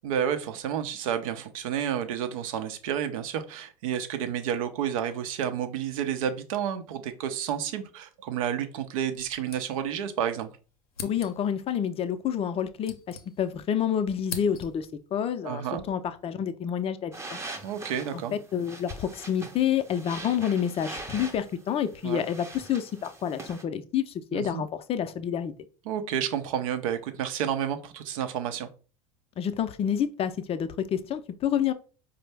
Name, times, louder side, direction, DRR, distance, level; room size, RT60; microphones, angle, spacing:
voice 1, 0.0-10.5 15.4-15.9 17.6-18.3 22.0-22.3 24.3-24.6 25.9-28.7, right 9 dB, 70° right, 0.6 m, -30 dB
sound 1, 9.1-10.2 10.4-10.5 10.9-11.6 12.4-13.7 14.0-15.0, left 5 dB, 85° left, 0.6 m, -42 dB
voice 2, 11.0-17.4 18.1-25.5 29.4-31.7, left 9 dB, 35° left, 0.5 m, -29 dB
sound 2, 17.1-23.6, right 2 dB, 15° right, 0.6 m, -43 dB
4.4 x 2.0 x 3.3 m
hypercardioid pair, 85°, 18 cm